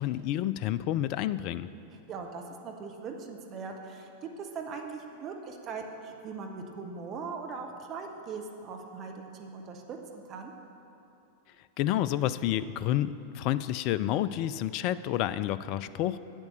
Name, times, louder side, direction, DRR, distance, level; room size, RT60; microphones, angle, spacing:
voice 1, 0.0-1.7 11.8-16.2, left 12 dB, 40° left, 16 dB, 0.3 m, -29 dB
voice 2, 2.1-10.5, right 5 dB, 30° right, 3 dB, 1.0 m, -40 dB
10.5 x 8.3 x 6.6 m, 2.8 s
figure-of-eight pair, 90°, 0 cm